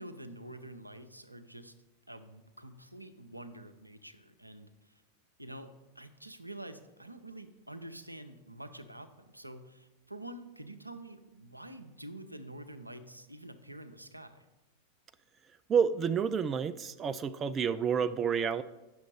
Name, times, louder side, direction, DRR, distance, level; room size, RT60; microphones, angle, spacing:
voice 1, 0.0-1.7 2.1-5.0 5.4-14.4, right 1 dB, 85° right, 9 dB, 0.6 m, -47 dB
voice 2, 15.7-18.6, right 7 dB, 25° right, 12 dB, 0.3 m, -29 dB
9.2 x 6.3 x 4.8 m, 1.1 s
figure-of-eight pair, 90°, 0 cm